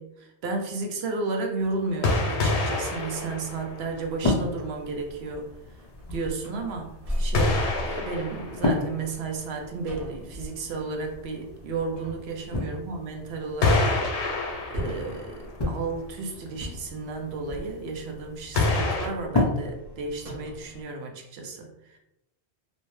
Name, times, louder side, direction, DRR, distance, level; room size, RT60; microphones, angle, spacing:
voice 1, 0.0-5.5 6.1-6.9 7.2-13.9 14.7-22.0, right 3 dB, 70° right, 2 dB, 0.8 m, -33 dB
sound 1, 2.0-4.2 4.6-4.7 7.3-9.2 12.1-12.2 13.6-15.5 15.9-16.0 18.6-19.1, left 2 dB, 85° left, 0.9 m, -26 dB
sound 2, 2.8-20.8, left 2 dB, 40° left, 0.3 m, -34 dB
sound 3, 4.4-4.6 5.1-5.3 5.7-6.6 7.0-8.5 9.9-10.3 12.0-12.4 12.9-13.0 13.4-14.3 14.7-15.4 16.5-17.0 18.2-19.0 19.8-19.9 20.2-20.7, equal, 45° right, 0.5 m, -36 dB
2.7 x 2.1 x 3.1 m, 0.88 s
omnidirectional pair, 1.1 m